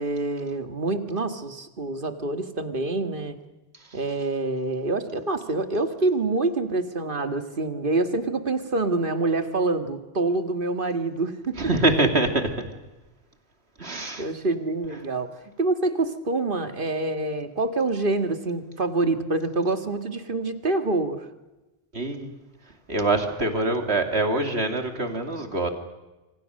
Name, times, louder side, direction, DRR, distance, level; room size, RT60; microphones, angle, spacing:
voice 1, 0.0-3.4 3.9-11.6 14.2-15.3 15.6-21.3, right 2 dB, 50° right, 8 dB, 2.0 m, -26 dB
voice 2, 11.6-12.7 13.8-14.3 21.9-22.3 22.9-25.7, right 2 dB, 65° right, 6 dB, 3.1 m, -24 dB
27.5 x 25.0 x 6.5 m, 1.1 s
omnidirectional pair, 1.2 m